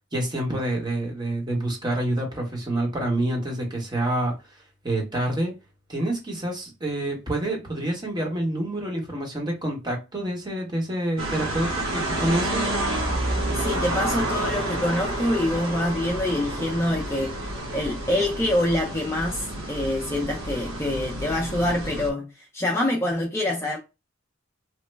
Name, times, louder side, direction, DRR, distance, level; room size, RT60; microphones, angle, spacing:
voice 1, 0.1-4.4 4.8-5.5 5.9-12.7, right 1 dB, 20° right, 1.0 m, -27 dB
sound 1, 11.2-22.1, right 1 dB, 85° right, 1.0 m, -29 dB
voice 2, 13.5-17.3 17.7-23.8, left 1 dB, 15° left, 0.4 m, -26 dB
3.0 x 2.0 x 3.3 m
head